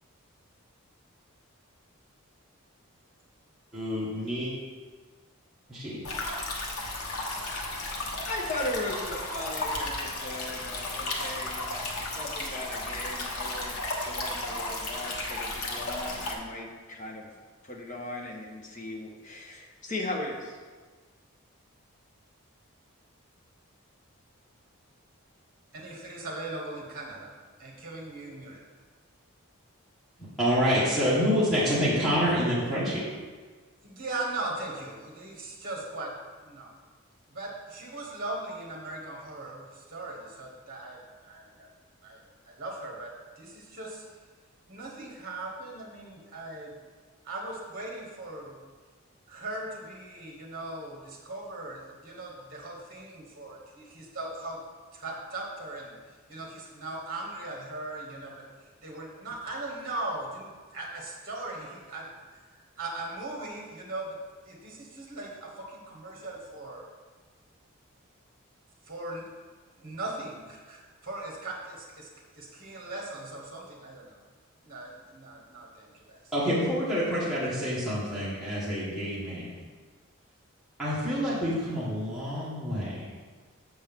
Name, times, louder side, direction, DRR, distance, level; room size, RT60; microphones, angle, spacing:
voice 1, 3.7-4.5 5.7-6.0 30.4-33.0 76.3-79.5 80.8-83.1, equal, ahead, -11 dB, 1.6 m, -27 dB
sound 1, 6.0-16.3, left 2 dB, 85° left, 1.1 m, -34 dB
voice 2, 7.5-7.9 8.2-17.3 17.6-20.6, left 1 dB, 35° left, -1 dB, 1.0 m, -38 dB
voice 3, 25.7-27.3 27.6-28.6 33.8-36.1 36.4-36.7 37.3-41.7 42.0-44.0 44.7-46.7 47.2-48.6 49.3-54.6 54.9-55.9 56.3-58.5 58.8-62.1 62.8-64.2 64.4-66.9 68.9-69.2 69.8-72.1 72.3-74.2 74.6-76.2, right 2 dB, 40° right, -1 dB, 1.1 m, -39 dB
7.7 x 6.2 x 3.6 m, 1.4 s
head